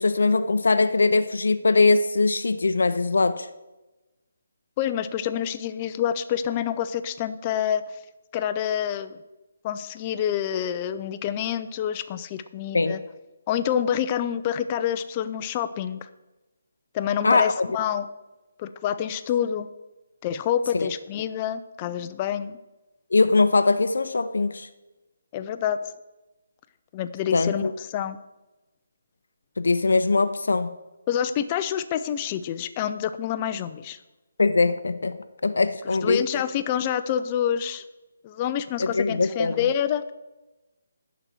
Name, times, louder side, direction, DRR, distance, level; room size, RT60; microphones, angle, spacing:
voice 1, 0.0-3.5 12.7-13.0 17.2-17.7 20.7-20.9 23.1-24.7 27.3-27.7 29.6-30.7 34.4-36.2 38.8-39.6, left 3 dB, 80° left, 11 dB, 0.5 m, -21 dB
voice 2, 4.8-7.8 8.3-9.2 9.6-13.0 13.5-16.0 16.9-18.1 18.6-19.7 20.2-22.6 25.3-25.8 26.9-28.2 31.1-34.0 35.8-37.8 38.2-40.1, left 9 dB, 20° left, 11 dB, 0.3 m, -27 dB
10.5 x 4.0 x 7.6 m, 1.1 s
hypercardioid pair, 170°, 0 cm